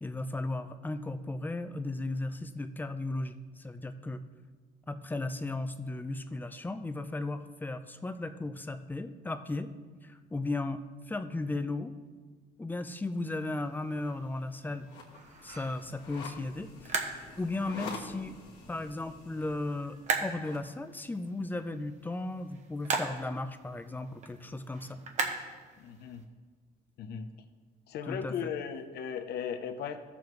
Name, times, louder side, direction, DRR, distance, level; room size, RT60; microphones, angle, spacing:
voice 1, 0.0-4.2 4.9-9.7 10.0-10.8 11.1-11.9 12.6-14.9 15.4-17.0 17.4-18.4 18.7-25.0 28.1-28.3, left 2 dB, 10° left, 9 dB, 0.5 m, -36 dB
sound 1, 13.0-26.2, right 4 dB, 45° right, 1.1 m, -40 dB
sound 2, 14.8-20.7, left 4 dB, 90° left, 1.5 m, -47 dB
voice 2, 25.8-26.3 27.0-27.3 27.9-30.0, left 7 dB, 70° left, 8 dB, 0.8 m, -37 dB
14.0 x 7.0 x 3.2 m, 1.4 s
cardioid pair, 110°, 17 cm